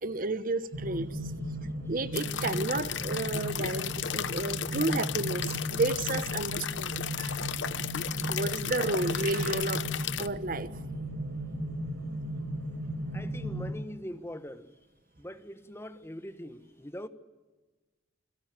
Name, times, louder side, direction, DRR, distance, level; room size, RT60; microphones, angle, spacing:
voice 1, 0.0-1.2 1.9-7.3 8.3-9.9 10.2-10.7, right 2 dB, 45° right, 1.0 m, -32 dB
sound 1, 0.7-13.7, equal, 75° right, 5.6 m, -36 dB
sound 2, 2.1-10.3, left 9 dB, 70° left, 0.9 m, -35 dB
voice 2, 13.1-14.7 15.2-17.1, equal, 15° left, 1.3 m, -42 dB
29.0 x 22.0 x 9.0 m
head